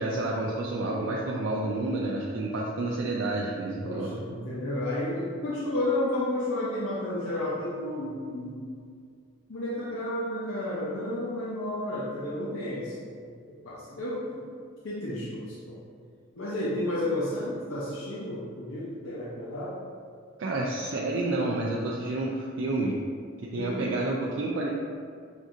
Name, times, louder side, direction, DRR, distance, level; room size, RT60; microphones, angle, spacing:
voice 1, 0.0-4.1 20.4-23.0 23.5-24.7, right 2 dB, 55° right, -3 dB, 0.4 m, -29 dB
voice 2, 3.8-8.7 9.5-13.3 13.6-14.4 14.8-15.8 16.4-19.7 23.5-23.8, left 1 dB, 65° left, -7 dB, 0.6 m, -32 dB
6.1 x 2.6 x 2.5 m, 2.2 s
head